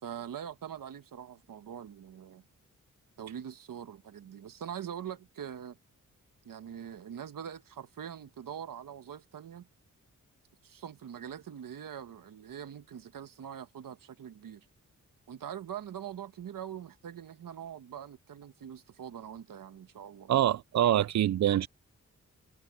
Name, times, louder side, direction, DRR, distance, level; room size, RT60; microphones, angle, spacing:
voice 1, 0.0-2.4 3.2-5.8 6.4-9.7 10.6-14.7 15.3-20.3, right 9 dB, 85° right, 1.6 m, -43 dB
voice 2, 20.3-21.7, right 12 dB, 60° right, 0.4 m, -25 dB
cardioid pair, 80°, 32 cm